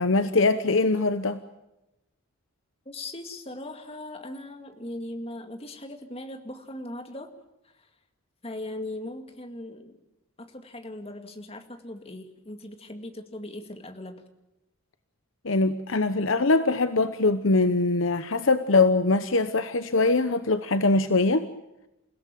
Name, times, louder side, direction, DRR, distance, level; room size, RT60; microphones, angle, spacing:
voice 1, 0.0-1.4 15.4-21.5, left 3 dB, 65° left, 11 dB, 0.9 m, -22 dB
voice 2, 2.9-7.3 7.7-7.9 8.4-10.0 10.4-14.2, left 1 dB, 25° left, 6 dB, 2.3 m, -39 dB
28.5 x 17.0 x 9.2 m, 0.92 s
head